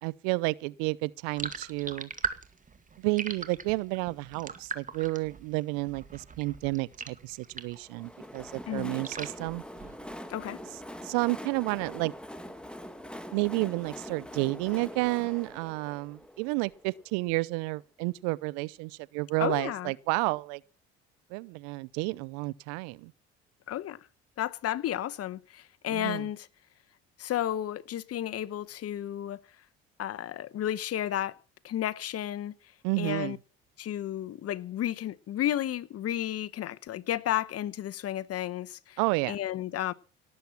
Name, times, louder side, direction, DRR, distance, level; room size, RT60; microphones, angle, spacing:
voice 1, 0.0-2.1 3.0-9.6 11.0-12.1 13.3-20.6 21.3-23.1 25.9-26.3 32.8-33.4 39.0-39.4, right 25 dB, 75° right, 0.7 m, -31 dB
sound 1, 1.3-7.9 8.2-10.3, right 5 dB, 25° right, 2.1 m, -40 dB
Train, 7.7-17.4, equal, 5° left, 2.1 m, -44 dB
voice 2, 8.7-9.0 10.3-10.6 19.4-19.9 23.7-24.0 24.4-26.5 27.2-29.4 30.0-31.4 31.6-32.5 33.0-33.4 33.8-39.0 39.3-39.9, left 12 dB, 50° left, 1.0 m, -32 dB
18.0 x 7.9 x 7.2 m
hypercardioid pair, 65°, 30 cm